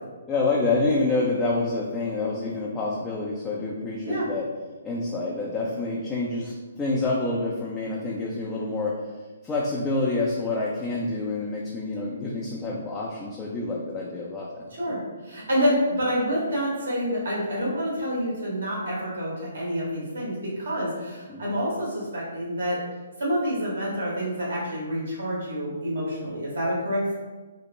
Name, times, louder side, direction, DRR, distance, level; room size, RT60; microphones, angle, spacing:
voice 1, 0.3-4.5 4.8-9.0 9.4-14.7 21.3-21.6, left 3 dB, 15° left, -5 dB, 0.3 m, -27 dB
voice 2, 15.2-22.8 23.2-27.1, equal, 65° right, -5 dB, 1.1 m, -27 dB
2.9 x 2.1 x 2.4 m, 1.3 s
figure-of-eight pair, 135°, 0 cm